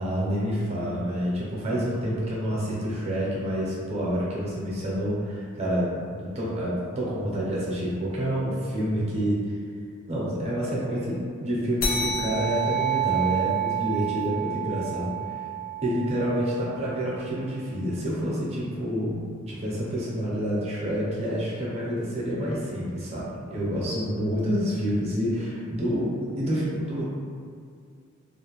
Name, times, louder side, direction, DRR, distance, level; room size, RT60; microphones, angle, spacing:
voice 1, 0.0-9.6 10.1-15.5 15.8-27.0, equal, 30° right, -6 dB, 0.6 m, -28 dB
sound 1, 11.8-16.7, right 7 dB, 40° left, 0.4 m, -29 dB
2.5 x 2.1 x 2.9 m, 2.2 s
head